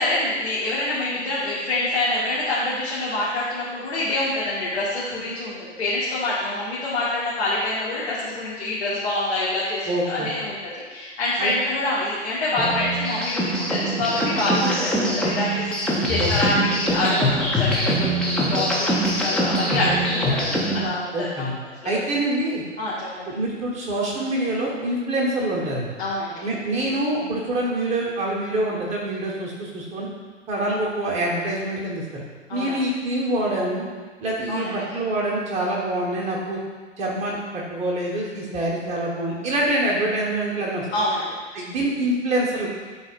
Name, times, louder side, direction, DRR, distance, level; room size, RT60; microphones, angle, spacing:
voice 1, 0.0-21.5 21.8-21.9 22.8-23.3 26.0-26.5 32.5-32.8 34.5-34.8 40.9-41.3, left 2 dB, 55° left, -9 dB, 1.7 m, -26 dB
voice 2, 9.9-10.3 11.4-11.5 16.2-16.6 21.1-21.5 21.8-22.6 23.3-25.9 26.4-30.1 30.5-32.2 32.5-33.9 34.2-36.6 37.0-40.9 41.5-42.7, right 1 dB, 20° right, -4 dB, 1.3 m, -25 dB
sound 1, 12.6-20.9, equal, ahead, 0.6 m, -23 dB
11.0 x 4.0 x 2.5 m, 1.4 s
figure-of-eight pair, 110°, 37 cm